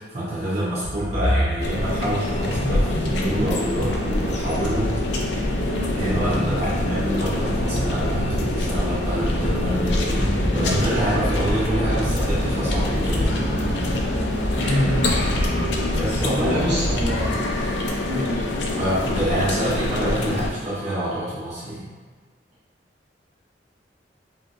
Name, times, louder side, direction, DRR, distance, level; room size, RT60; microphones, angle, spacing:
voice 1, 0.1-4.0 4.2-4.9 5.9-13.4 15.9-16.6 18.8-21.9, right 1 dB, 40° right, -10 dB, 0.8 m, -27 dB
sound 1, 0.8-17.7, equal, 15° right, 1.1 m, -27 dB
sound 2, 1.6-20.5, left 2 dB, 75° left, 0.4 m, -26 dB
voice 2, 14.5-15.0 16.3-17.3 18.0-18.4, equal, 75° right, -8 dB, 1.1 m, -25 dB
3.7 x 2.7 x 2.4 m, 1.4 s
head